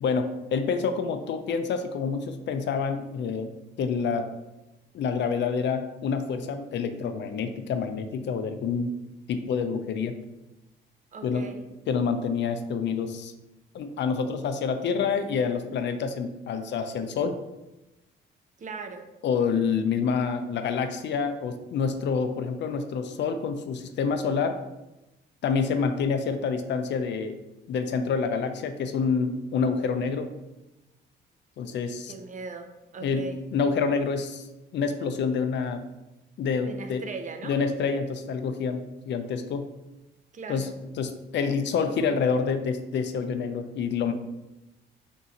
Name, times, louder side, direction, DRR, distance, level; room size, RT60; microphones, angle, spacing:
voice 1, 0.0-3.5 3.8-4.3 4.9-9.0 9.3-10.2 11.2-11.5 11.9-13.3 13.7-17.4 19.2-24.6 25.4-27.4 27.7-30.3 31.6-32.1 33.0-34.5 34.7-35.8 36.4-37.0 37.4-39.7 40.5-40.7 41.0-44.1, left 5 dB, 65° left, 7 dB, 0.5 m, -27 dB
voice 2, 11.1-11.7 18.6-19.1 32.1-33.4 36.7-37.6 40.3-40.7, right 4 dB, 40° right, 6 dB, 0.5 m, -39 dB
3.6 x 2.7 x 4.2 m, 0.98 s
cardioid pair, 90°, 20 cm